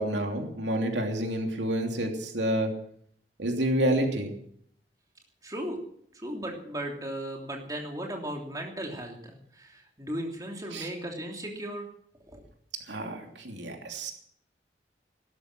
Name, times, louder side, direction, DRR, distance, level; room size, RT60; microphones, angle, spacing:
voice 1, 0.0-2.7 3.4-4.3 10.7-10.9 12.9-14.1, right 1 dB, 85° right, 3 dB, 3.0 m, -29 dB
voice 2, 5.4-5.8 6.1-11.9 12.3-12.4, right 1 dB, 20° right, 1 dB, 3.0 m, -36 dB
17.0 x 13.0 x 6.1 m, 0.63 s
head